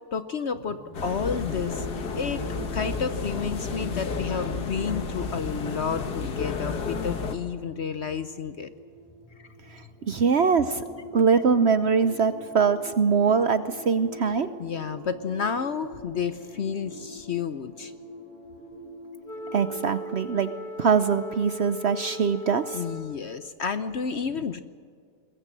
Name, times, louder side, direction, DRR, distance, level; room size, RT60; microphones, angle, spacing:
voice 1, 0.1-1.9 2.2-2.4 2.7-8.7 9.4-9.5 14.3-17.9 22.7-24.6, left 6 dB, 55° left, 11 dB, 0.8 m, -31 dB
sound 1, 0.8-20.5, left 1 dB, 20° left, 7.0 m, -43 dB
sound 2, 0.9-7.4, left 5 dB, 85° left, 2.0 m, -32 dB
voice 2, 9.7-10.8 11.1-14.5 19.5-20.5 20.8-22.8, right 5 dB, 55° right, 11 dB, 0.8 m, -23 dB
Wind instrument woodwind instrument, 19.2-23.6, equal, 35° left, 1.2 m, -39 dB
21.5 x 21.0 x 7.4 m, 2.1 s
omnidirectional pair, 1.7 m